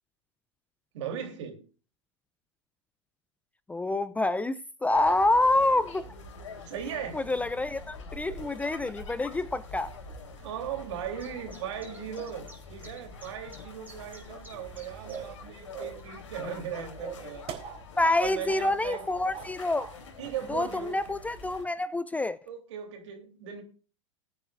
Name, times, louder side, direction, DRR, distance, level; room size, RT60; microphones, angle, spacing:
voice 1, 0.9-1.6 6.6-7.2 10.4-17.5 18.2-19.0 20.2-21.2 22.5-23.6, right 8 dB, 65° right, 3.2 m, -38 dB
voice 2, 3.7-6.1 7.1-9.9 18.0-19.9 20.5-22.4, left 2 dB, 10° left, 0.5 m, -27 dB
sound 1, 4.9-21.7, left 3 dB, 75° left, 3.5 m, -46 dB
Chirp tweet, 11.2-17.7, right 1 dB, 10° right, 4.4 m, -56 dB
sound 2, 15.1-15.4 15.7-16.0 16.4-16.7 17.0-18.2 18.5-18.6 18.9-19.5 19.8-19.9, right 7 dB, 40° right, 3.6 m, -40 dB
20.5 x 9.1 x 2.5 m
hypercardioid pair, 95°, 16 cm